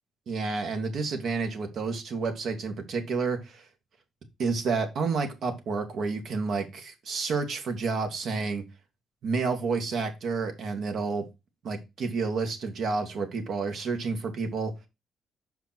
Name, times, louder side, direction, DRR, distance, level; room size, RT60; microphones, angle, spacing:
voice 1, 0.3-3.7 4.4-8.6 9.2-11.2 11.6-14.7, right 4 dB, 65° right, 2.1 m, -30 dB
6.3 x 5.0 x 4.4 m
cardioid pair, 95°, 0 cm